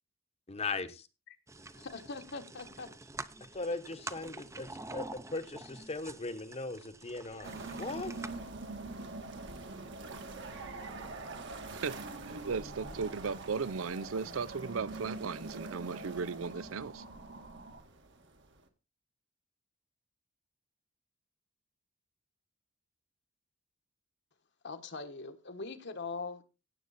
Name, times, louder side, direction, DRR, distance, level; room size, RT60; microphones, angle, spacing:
voice 1, 0.5-1.0 3.5-7.5 7.8-8.1, left 3 dB, 30° left, 1.1 m, -38 dB
sound 1, 1.5-8.3, right 2 dB, 15° right, 0.7 m, -47 dB
voice 2, 1.7-2.9 24.6-26.4, left 4 dB, 60° left, 1.3 m, -42 dB
sound 2, 7.4-18.6, right 3 dB, 60° right, 1.9 m, -44 dB
voice 3, 11.7-17.0, right 5 dB, 75° right, 0.6 m, -36 dB
17.0 x 7.7 x 4.2 m
head